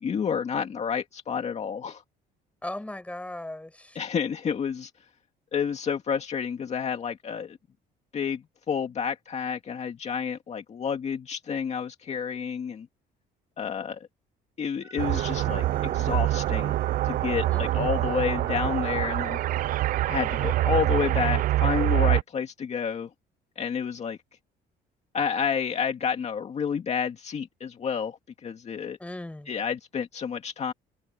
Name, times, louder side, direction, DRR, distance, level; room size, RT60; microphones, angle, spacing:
voice 1, 0.0-2.0 4.0-4.9 5.5-7.6 8.1-8.4 8.7-12.9 13.6-14.0 14.6-16.7 17.0-19.4 20.1-23.1 23.6-24.2 25.1-29.0 29.5-30.7, left 7 dB, 40° left, 2.1 m, -30 dB
voice 2, 2.6-4.0 17.5-18.1 29.0-29.5, left 1 dB, 10° left, 5.6 m, -38 dB
sound 1, 14.8-20.7, right 3 dB, 20° right, 5.6 m, -50 dB
sound 2, 15.0-22.2, right 15 dB, 55° right, 0.4 m, -25 dB
cardioid pair, 110°, 17 cm